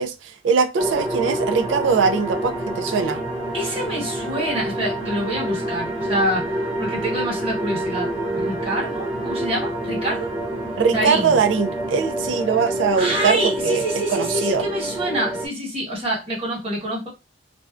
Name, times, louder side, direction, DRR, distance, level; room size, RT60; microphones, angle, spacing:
voice 1, 0.0-3.2 10.8-13.8 14.1-14.7, right 5 dB, 85° right, 0.4 m, -21 dB
sound 1, 0.8-15.5, right 1 dB, 5° right, 0.8 m, -27 dB
voice 2, 3.5-6.5 6.8-10.3 10.9-11.4 13.0-17.1, right 1 dB, 30° right, 1.2 m, -26 dB
2.5 x 2.1 x 2.4 m
head